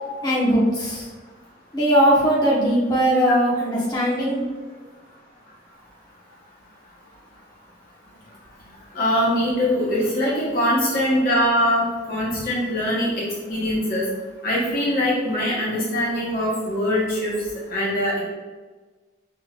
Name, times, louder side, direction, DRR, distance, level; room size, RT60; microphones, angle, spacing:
voice 1, 0.2-1.0 1.7-4.4, equal, 20° left, -7 dB, 1.2 m, -19 dB
voice 2, 8.9-14.0 14.4-17.4 17.7-18.1, equal, 50° left, -6 dB, 1.0 m, -22 dB
5.4 x 3.9 x 2.4 m, 1.3 s
head